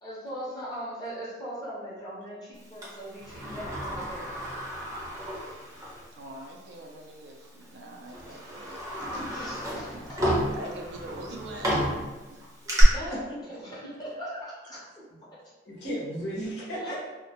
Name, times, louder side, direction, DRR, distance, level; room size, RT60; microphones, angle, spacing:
voice 1, 0.0-4.3 8.3-8.4 9.3-10.6 12.8-13.2 13.5-15.4 16.8-17.0, equal, 25° left, -8 dB, 0.7 m, -40 dB
Sliding door, 2.8-6.0 6.4-6.5 7.4-7.6 8.1-12.8, equal, 20° right, 0.6 m, -32 dB
voice 2, 6.1-9.2 9.9-10.1 10.5-12.0 12.3-12.4 13.1-13.2 13.5-13.6, right 2 dB, 70° right, 0 dB, 0.4 m, -43 dB
voice 3, 8.9-9.5 12.6-13.4 15.7-17.0, equal, 90° left, -5 dB, 0.8 m, -36 dB
2.1 x 2.1 x 2.8 m, 1.2 s
head